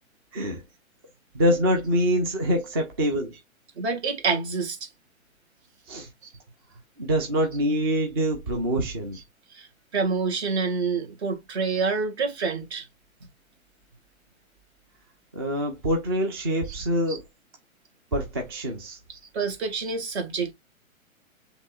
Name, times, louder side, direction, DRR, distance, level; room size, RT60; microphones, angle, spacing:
voice 1, 1.3-3.3 5.9-6.1 7.0-9.2 15.3-17.2 18.1-19.0, equal, 20° right, 0.4 m, -25 dB
voice 2, 3.8-4.9 9.1-9.2 9.5-9.7 9.9-12.8 16.6-16.8 17.1-17.2 18.9-20.5, right 4 dB, 50° right, 1.7 m, -28 dB
7.1 x 2.9 x 2.3 m
figure-of-eight pair, 120°, 41 cm